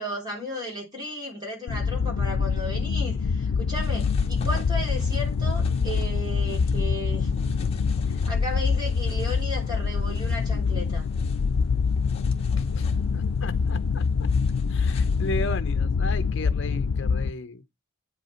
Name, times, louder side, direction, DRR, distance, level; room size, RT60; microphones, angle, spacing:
voice 1, 0.0-7.3 8.1-11.1, equal, 20° right, 3.1 m, -35 dB
sound 1, 1.7-17.3, left 5 dB, 85° left, 0.4 m, -25 dB
sound 2, 3.8-15.6, left 1 dB, 30° left, 1.5 m, -46 dB
voice 2, 12.6-14.0 14.7-17.6, left 2 dB, 55° left, 0.8 m, -35 dB
8.5 x 5.4 x 4.4 m
head